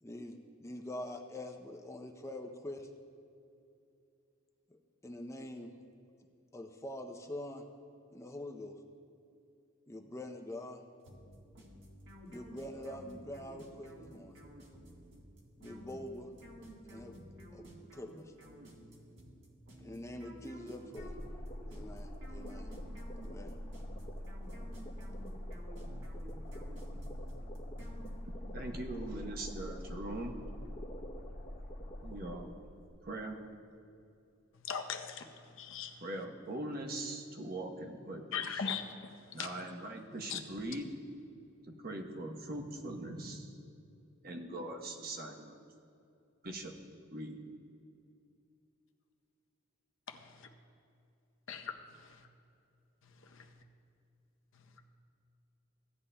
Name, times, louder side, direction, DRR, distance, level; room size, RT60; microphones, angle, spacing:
voice 1, 0.0-2.9 4.7-5.7 6.5-7.7 8.1-8.8 9.9-10.8 12.3-14.4 15.6-16.3 16.9-17.2 17.5-17.6 17.9-18.3 19.8-21.1 21.6-22.7 23.2-23.5, left 1 dB, 15° left, 4 dB, 0.5 m, -45 dB
sound 1, 11.0-28.5, equal, 60° right, 1.6 m, -53 dB
sound 2, 21.0-32.9, equal, 35° left, 0.9 m, -44 dB
voice 2, 28.5-30.4 32.0-32.5 33.0-33.5 36.0-38.7 39.3-40.9 41.6-43.5 44.2-45.6 46.4-46.7 47.1-47.4, right 1 dB, 45° right, 2 dB, 0.9 m, -41 dB
voice 3, 34.7-35.2 35.6-35.9 38.3-38.8 40.3-40.4 51.5-51.7, left 7 dB, 65° left, 4 dB, 0.7 m, -37 dB
16.0 x 9.6 x 2.2 m, 2.6 s
head